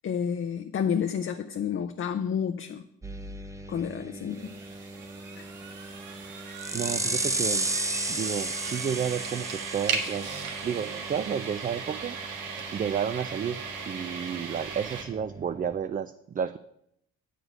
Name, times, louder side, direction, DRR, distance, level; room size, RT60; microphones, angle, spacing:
voice 1, 0.0-2.8 3.7-4.5 5.4-5.5, left 7 dB, 45° left, 6 dB, 0.6 m, -30 dB
sound 1, 3.0-15.8, right 2 dB, 10° right, 0.8 m, -35 dB
sound 2, 4.3-15.0, right 5 dB, 85° right, 1.5 m, -37 dB
voice 2, 6.7-7.7 8.1-12.2 12.7-16.6, right 8 dB, 30° right, 11 dB, 0.4 m, -31 dB
7.9 x 5.1 x 7.5 m, 0.76 s
cardioid pair, 90°, 30 cm